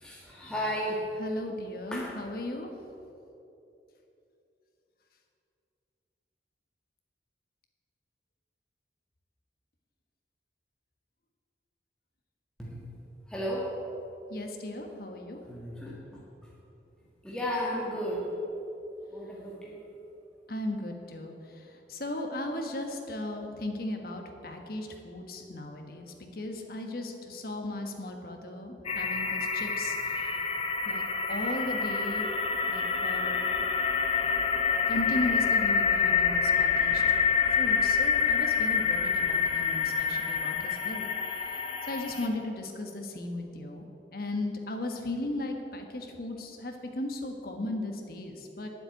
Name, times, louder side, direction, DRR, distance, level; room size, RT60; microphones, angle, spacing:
voice 1, 0.0-1.2 1.9-2.1 12.6-12.9 13.3-14.0 15.5-16.2 17.2-18.3 19.1-19.8, equal, 5° left, -5 dB, 1.6 m, -34 dB
voice 2, 1.2-2.7 14.3-15.4 20.5-30.4 30.8-32.3 32.7-33.4 34.9-37.2 37.5-41.1 41.9-43.9 44.1-48.7, left 1 dB, 55° left, 4 dB, 1.5 m, -36 dB
sound 1, 28.9-42.3, left 6 dB, 35° left, 0.9 m, -27 dB
9.9 x 7.7 x 9.2 m, 2.8 s
head